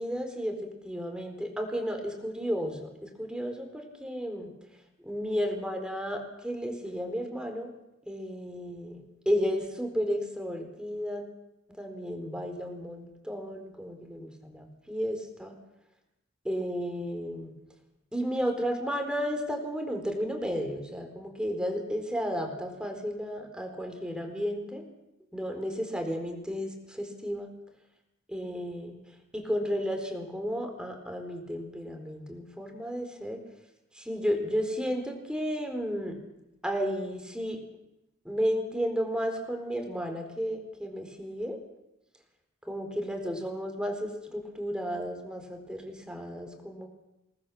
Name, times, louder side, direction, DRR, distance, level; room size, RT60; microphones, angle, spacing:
voice 1, 0.0-4.5 5.0-7.7 8.0-9.0 9.3-11.2 11.8-15.5 16.4-17.5 18.1-24.8 25.3-27.5 28.3-29.0 29.3-33.4 34.0-36.2 36.6-37.6 38.2-41.6 42.7-46.9, equal, 5° right, 4 dB, 4.2 m, -33 dB
27.0 x 20.0 x 7.3 m, 0.91 s
head